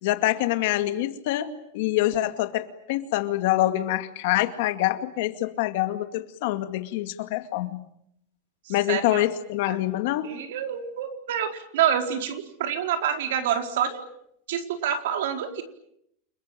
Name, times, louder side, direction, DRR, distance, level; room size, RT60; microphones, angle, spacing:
voice 1, 0.0-7.8 8.7-10.3, left 15 dB, 60° left, 9 dB, 2.3 m, -25 dB
voice 2, 8.7-9.2 9.7-9.8 10.2-14.0 14.5-15.6, right 9 dB, 80° right, 5 dB, 4.3 m, -27 dB
29.5 x 21.5 x 9.0 m, 0.76 s
supercardioid pair, 170°, 0 cm